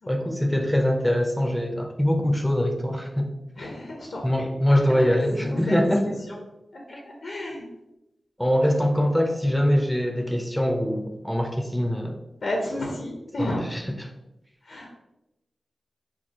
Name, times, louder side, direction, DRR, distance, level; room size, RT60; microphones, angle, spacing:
voice 1, 0.1-3.3 4.2-6.0 6.9-7.0 8.4-12.2 13.4-13.8, equal, 5° left, 2 dB, 0.7 m, -23 dB
voice 2, 3.6-4.5 5.0-5.8 6.0-6.4 6.7-7.7 12.4-13.7 14.6-14.9, left 1 dB, 75° left, 0 dB, 0.9 m, -33 dB
6.2 x 2.3 x 2.9 m, 0.93 s
cardioid pair, 50°, 0 cm